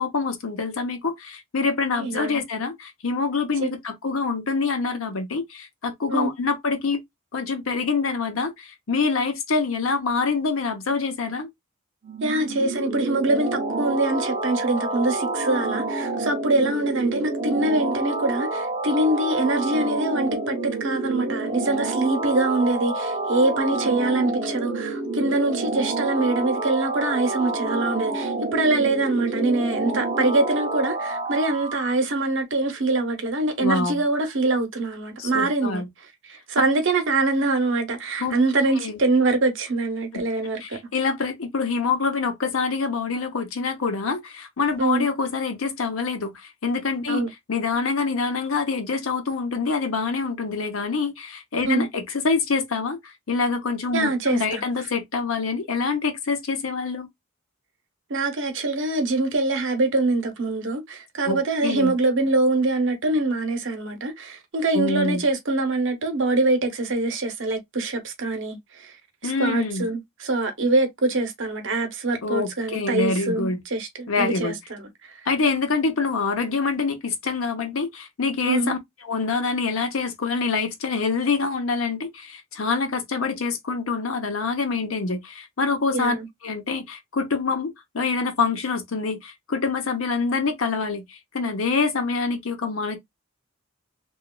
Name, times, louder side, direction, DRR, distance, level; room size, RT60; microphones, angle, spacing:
voice 1, 0.0-7.0 7.3-11.5 33.6-34.0 35.2-35.9 38.2-38.3 38.8-39.0 40.1-40.2 40.6-47.2 47.5-57.1 61.2-62.0 64.7-65.2 69.2-69.9 72.2-73.6 74.1-74.6 75.3-78.8 79.0-86.2 86.4-93.0, left 4 dB, 80° left, 0.7 m, -26 dB
voice 2, 1.9-2.4 3.6-3.7 6.1-6.3 12.2-35.8 36.3-40.8 44.8-45.1 47.1-47.3 51.6-51.9 53.9-54.6 58.1-68.9 69.2-75.1 78.4-78.7 85.9-86.3, right 2 dB, 65° right, 0.8 m, -24 dB
sound 1, 12.0-32.0, right 2 dB, 30° right, 0.5 m, -28 dB
2.9 x 2.3 x 2.2 m
head